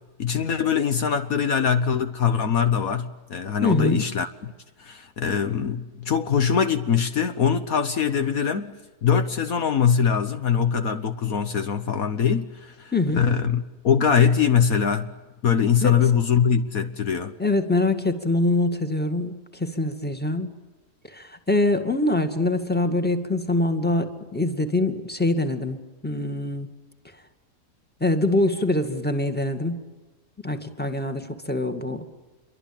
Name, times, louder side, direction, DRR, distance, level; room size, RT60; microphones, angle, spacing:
voice 1, 0.2-4.5 4.8-8.7 9.0-15.1 15.4-17.3, left 7 dB, 65° left, 1.5 m, -22 dB
voice 2, 3.6-4.0 12.9-13.3 15.8-16.0 17.4-20.5 21.1-26.7 28.0-29.8 30.4-32.0, left 2 dB, 5° left, 2.1 m, -24 dB
27.5 x 23.5 x 8.9 m
omnidirectional pair, 1.7 m